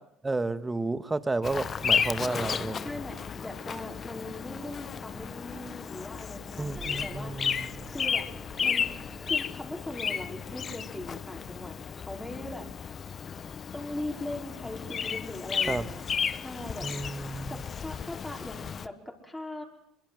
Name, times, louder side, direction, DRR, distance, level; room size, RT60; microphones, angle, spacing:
voice 1, 0.2-2.9 6.6-7.9 15.7-15.8 16.8-17.6, right 3 dB, 20° right, 12 dB, 1.8 m, -32 dB
Bird vocalization bird call bird song, 1.4-18.9, left 7 dB, 40° left, 1.0 m, -33 dB
voice 2, 2.3-7.3 7.9-8.3 8.6-8.9 9.2-12.7 13.7-16.0 16.3-16.9 17.5-19.6, left 1 dB, 10° left, 0 dB, 5.1 m, -40 dB
sound 1, 3.8-9.4, right 5 dB, 45° right, 7.1 m, -51 dB
23.5 x 23.0 x 7.9 m, 0.73 s
hypercardioid pair, 70°, 0 cm